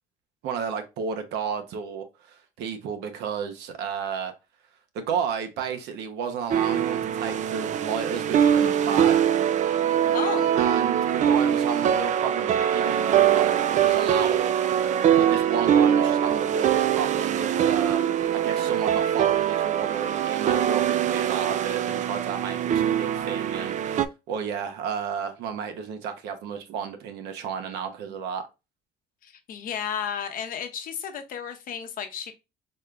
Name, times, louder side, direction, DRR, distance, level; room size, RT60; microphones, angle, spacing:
voice 1, 0.4-4.3 4.9-9.2 10.5-14.5 15.2-18.1 18.3-24.0 24.3-28.4, right 7 dB, 85° right, 0.9 m, -32 dB
sound 1, 6.5-24.1, right 9 dB, 45° right, 0.4 m, -23 dB
voice 2, 10.1-10.5 29.2-32.3, left 8 dB, 55° left, 0.8 m, -33 dB
4.3 x 3.3 x 2.4 m
cardioid pair, 110°, 17 cm